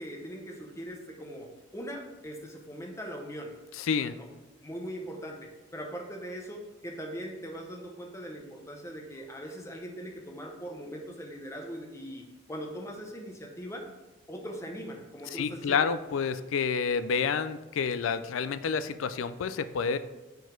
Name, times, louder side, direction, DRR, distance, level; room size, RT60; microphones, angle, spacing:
voice 1, 0.0-3.5 4.2-4.3 4.6-13.9 14.3-15.8, equal, 15° left, 1 dB, 0.8 m, -40 dB
voice 2, 3.8-4.2 15.3-20.0, left 6 dB, 85° left, 13 dB, 0.4 m, -29 dB
5.1 x 3.9 x 5.1 m, 1.1 s
head